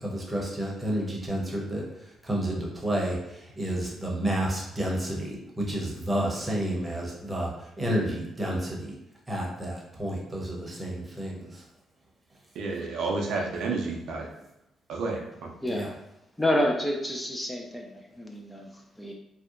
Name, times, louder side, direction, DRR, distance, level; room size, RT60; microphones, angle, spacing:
voice 1, 0.0-8.9 9.3-11.6 15.7-15.9, right 1 dB, 15° right, -3 dB, 0.8 m, -30 dB
voice 2, 12.5-14.3 14.9-15.5, right 3 dB, 75° right, 0 dB, 0.4 m, -30 dB
voice 3, 15.6-15.9 16.4-19.1, left 1 dB, 10° left, 0 dB, 0.3 m, -29 dB
2.7 x 2.1 x 2.4 m, 0.86 s
cardioid pair, 90°, 0 cm